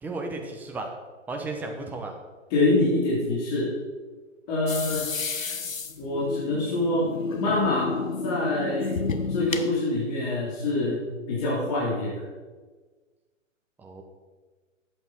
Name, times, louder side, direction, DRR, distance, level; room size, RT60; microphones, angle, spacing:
voice 1, 0.0-0.9 1.3-2.1 13.8-14.0, right 2 dB, 5° right, 3 dB, 0.6 m, -34 dB
voice 2, 2.5-3.7 4.5-5.1 6.0-8.0 8.2-9.0 9.3-12.2, left 2 dB, 30° left, -6 dB, 3.2 m, -25 dB
sound 1, 4.7-9.7, left 4 dB, 90° left, 1.0 m, -31 dB
12.0 x 8.3 x 4.2 m, 1.3 s
figure-of-eight pair, 130°, 39 cm